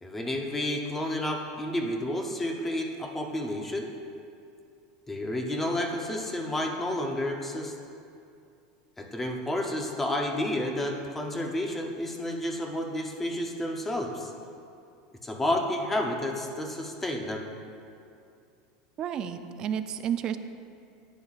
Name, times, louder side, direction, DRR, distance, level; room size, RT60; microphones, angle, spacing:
voice 1, 0.0-3.9 5.1-7.7 9.0-14.3 15.2-17.5, left 1 dB, 10° left, 2 dB, 0.6 m, -30 dB
voice 2, 19.0-20.4, right 9 dB, 25° right, 9 dB, 0.3 m, -31 dB
10.5 x 9.0 x 2.4 m, 2.5 s
supercardioid pair, 170°, 3 cm